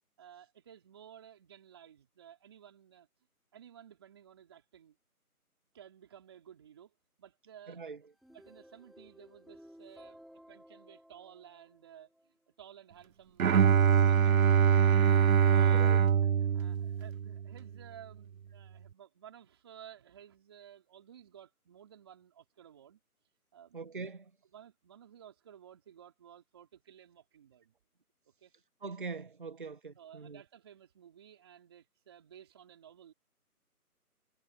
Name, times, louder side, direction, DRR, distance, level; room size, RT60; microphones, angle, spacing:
voice 1, 0.2-3.1 3.5-5.0 5.7-6.9 7.2-7.9 8.3-14.9 15.4-23.0 23.5-23.8 24.5-27.7 28.4-28.5 30.0-33.1, right 9 dB, 15° right, 4.5 m, -55 dB
voice 2, 7.7-8.0 15.7-16.0 23.7-24.3 28.8-30.4, right 4 dB, 35° right, 1.5 m, -42 dB
sound 1, 8.0-12.3, equal, ahead, 5.2 m, -57 dB
Bowed string instrument, 13.4-17.5, right 8 dB, 65° right, 0.5 m, -24 dB
figure-of-eight pair, 175°, 45 cm